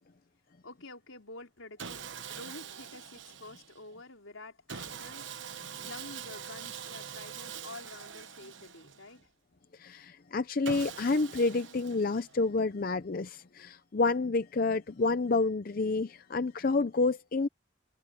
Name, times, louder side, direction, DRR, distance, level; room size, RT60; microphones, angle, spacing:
voice 1, 0.6-9.3, left 2 dB, 80° left, 4.0 m, -49 dB
Sawing, 1.8-3.8 4.7-9.2 10.6-12.5, right 7 dB, 65° right, 1.1 m, -44 dB
voice 2, 9.8-17.5, left 3 dB, 45° left, 0.5 m, -29 dB
head